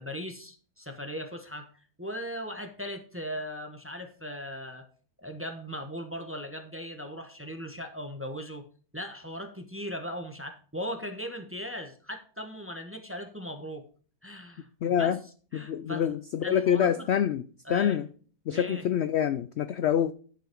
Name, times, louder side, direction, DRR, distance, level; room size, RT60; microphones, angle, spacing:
voice 1, 0.0-1.7 2.0-4.9 5.2-8.6 8.9-13.8 14.2-14.7 15.0-15.2 15.5-16.1 16.4-17.1 17.6-18.0 18.5-18.8, equal, 10° right, 0.8 m, -38 dB
voice 2, 14.8-15.2 15.5-18.1 18.5-20.1, left 9 dB, 75° left, 0.6 m, -26 dB
11.0 x 5.8 x 4.5 m
omnidirectional pair, 1.7 m